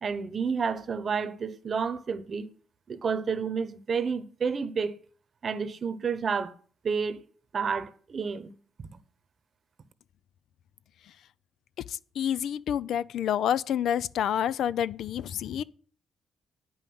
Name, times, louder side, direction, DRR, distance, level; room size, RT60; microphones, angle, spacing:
voice 1, 0.0-2.5 2.9-5.0 5.4-6.5 6.8-7.2 7.5-8.5 8.8-8.9, right 6 dB, 45° right, 0.9 m, -30 dB
voice 2, 12.2-15.6, left 9 dB, 75° left, 0.4 m, -28 dB
9.1 x 5.6 x 7.7 m
cardioid pair, 90°, 0 cm